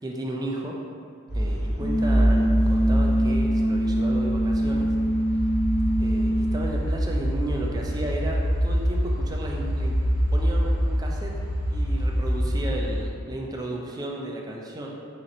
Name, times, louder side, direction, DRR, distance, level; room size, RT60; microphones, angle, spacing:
voice 1, 0.0-0.8 1.3-4.9 6.0-10.0 10.3-11.3 11.7-14.9, right 1 dB, 20° right, -1 dB, 0.4 m, -33 dB
sound 1, 1.3-13.0, equal, 75° left, 1.3 m, -25 dB
sound 2, 1.8-6.8, right 1 dB, 50° left, 0.6 m, -24 dB
4.1 x 2.5 x 4.1 m, 2.3 s
head